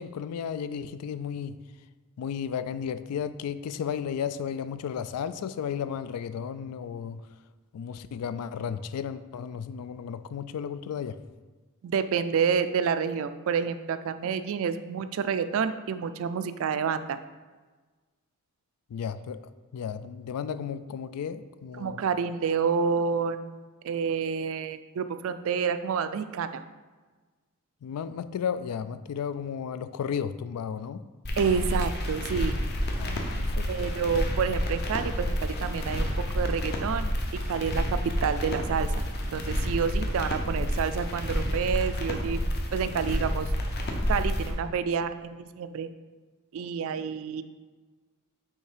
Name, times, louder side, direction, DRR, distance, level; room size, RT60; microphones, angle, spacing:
voice 1, 0.0-1.6 2.2-7.2 7.7-11.2 18.9-19.4 19.7-22.0 27.8-31.0 33.0-33.9, left 7 dB, 85° left, 14 dB, 0.3 m, -34 dB
voice 2, 11.8-17.2 21.8-23.6 23.8-26.6 31.4-32.6 33.7-36.1 36.3-37.1 37.5-37.8 38.2-42.4 42.7-43.5 44.1-45.9 46.5-47.4, right 6 dB, 60° right, 11 dB, 0.3 m, -29 dB
sound 1, 31.2-44.5, equal, 45° left, 0.8 m, -29 dB
5.4 x 3.5 x 4.9 m, 1.3 s
head